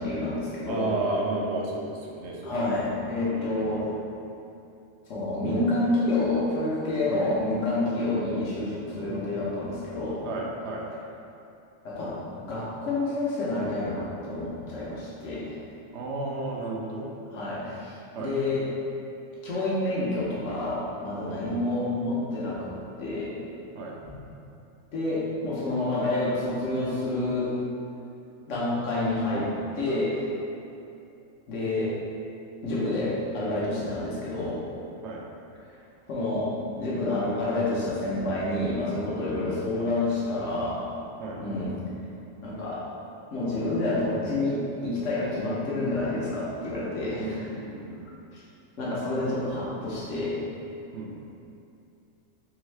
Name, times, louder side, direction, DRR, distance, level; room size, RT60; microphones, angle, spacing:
voice 1, 0.0-0.9 2.4-3.9 5.1-10.3 11.8-15.6 17.3-18.7 19.4-23.3 24.0-24.1 24.9-27.5 28.5-30.3 31.5-31.9 32.6-34.6 36.1-40.8 41.4-41.7 42.4-42.8 43.3-47.4 48.3-48.4 48.8-50.4, left 2 dB, 70° left, -7 dB, 1.2 m, -28 dB
voice 2, 0.7-2.6 3.2-3.8 7.1-7.3 7.8-8.1 9.0-9.3 10.2-10.9 15.9-17.1 18.1-18.3 21.3-21.5 23.7-24.0 35.0-35.2 41.2-41.4 47.1-48.1 50.9-51.2, right 2 dB, 70° right, -1 dB, 0.8 m, -33 dB
3.6 x 3.5 x 3.3 m, 2.6 s
omnidirectional pair, 1.3 m